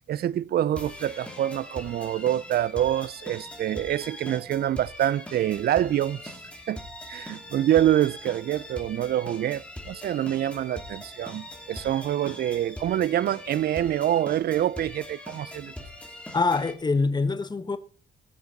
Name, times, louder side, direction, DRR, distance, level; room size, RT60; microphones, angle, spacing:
voice 1, 0.0-6.3 6.7-6.8 7.1-15.7, right 11 dB, 50° right, 0.4 m, -26 dB
sound 1, 0.7-16.7, left 1 dB, 5° left, 2.7 m, -42 dB
voice 2, 16.3-17.8, left 4 dB, 20° left, 1.0 m, -24 dB
18.0 x 7.1 x 4.0 m
cardioid pair, 90°, 20 cm